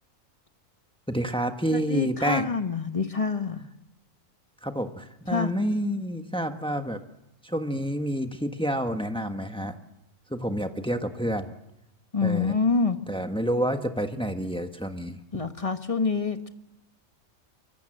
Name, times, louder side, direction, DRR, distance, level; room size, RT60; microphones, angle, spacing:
voice 1, 1.1-2.5 4.6-7.0 7.4-9.7 10.3-11.5 12.2-12.5 13.1-15.2, equal, 5° left, 6 dB, 1.2 m, -28 dB
voice 2, 1.7-3.7 5.2-5.5 12.1-13.0 15.3-16.5, left 4 dB, 25° left, 8 dB, 1.2 m, -26 dB
25.0 x 24.0 x 7.8 m, 0.91 s
omnidirectional pair, 1.4 m